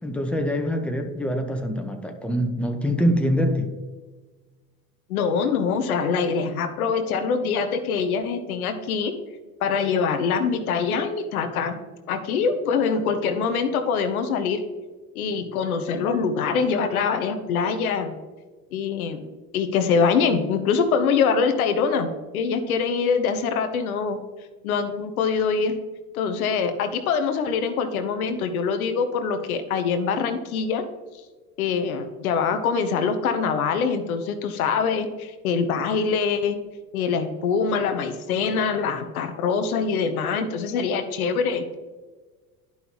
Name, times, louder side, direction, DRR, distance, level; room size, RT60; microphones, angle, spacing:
voice 1, 0.0-3.7, equal, 5° left, 4 dB, 1.1 m, -24 dB
voice 2, 5.1-9.1 9.6-11.8 12.1-14.6 15.1-18.2 18.7-19.3 19.5-24.2 24.6-25.7 26.1-30.8 31.6-36.6 36.9-41.6, left 5 dB, 85° left, 8 dB, 0.9 m, -24 dB
10.5 x 5.5 x 3.0 m, 1.3 s
hypercardioid pair, 70°, 42 cm